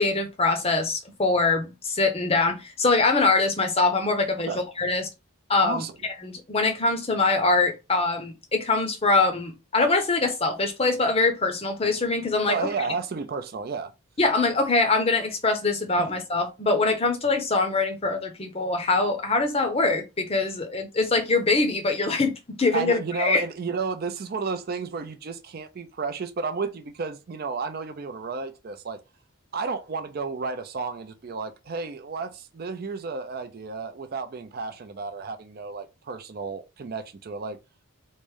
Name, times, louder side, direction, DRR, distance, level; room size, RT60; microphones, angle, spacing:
voice 1, 0.0-5.1 5.5-5.8 6.2-12.7 14.2-23.4, left 3 dB, 25° left, 0.6 m, -23 dB
voice 2, 5.6-5.9 12.5-13.9 16.0-16.1 22.7-29.0 29.5-37.6, right 4 dB, 40° right, 0.4 m, -32 dB
3.1 x 2.6 x 3.5 m
head